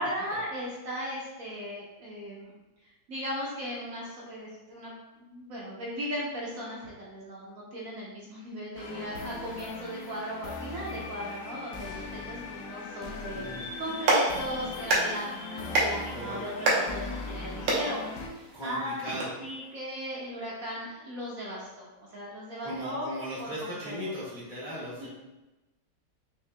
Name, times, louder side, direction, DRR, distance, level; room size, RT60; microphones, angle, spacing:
voice 1, 0.0-2.5 3.1-18.0 18.3-19.0 19.4-23.1 23.4-24.1 25.0-25.1, equal, 60° right, -5 dB, 1.0 m, -37 dB
sound 1, 8.7-18.3, left 3 dB, 70° left, 0.8 m, -39 dB
voice 2, 13.3-13.7 16.1-16.4 18.5-19.8 22.6-25.1, equal, 40° left, -9 dB, 0.7 m, -38 dB
Clapping, 13.8-19.2, right 2 dB, 80° right, 1.5 m, -30 dB
5.4 x 2.8 x 2.2 m, 1.1 s
omnidirectional pair, 1.9 m